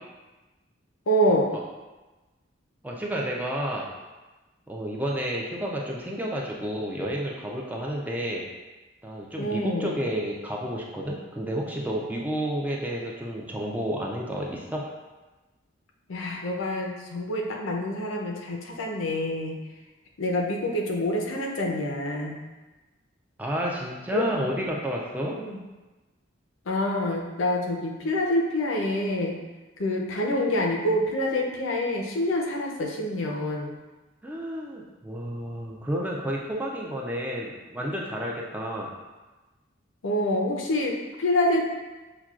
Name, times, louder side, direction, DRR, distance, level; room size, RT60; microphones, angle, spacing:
voice 1, 1.1-1.5 9.4-9.9 16.1-19.6 20.2-22.4 24.1-24.3 25.2-25.6 26.7-29.3 29.8-33.8 40.0-41.7, left 1 dB, 85° left, 1 dB, 0.6 m, -26 dB
voice 2, 2.8-3.9 4.7-8.5 9.0-14.9 23.4-25.3 34.2-38.9, equal, 10° right, -2 dB, 0.4 m, -31 dB
5.7 x 2.2 x 2.4 m, 1.2 s
head